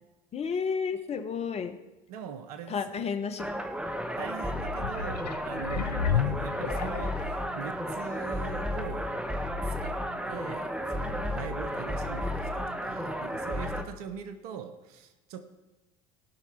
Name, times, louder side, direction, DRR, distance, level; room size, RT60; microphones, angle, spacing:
voice 1, 0.3-1.8 2.7-3.4 12.2-12.3, left 6 dB, 30° left, 8 dB, 1.0 m, -31 dB
voice 2, 2.1-3.0 4.2-9.1 9.8-10.0 10.3-15.4, right 7 dB, 70° right, 9 dB, 0.9 m, -42 dB
sound 1, 3.4-13.8, equal, 5° right, 1.0 m, -33 dB
sound 2, 4.7-7.4 8.0-8.1, left 9 dB, 90° left, 0.4 m, -32 dB
17.0 x 5.9 x 4.4 m, 1.0 s
hypercardioid pair, 75°, 20 cm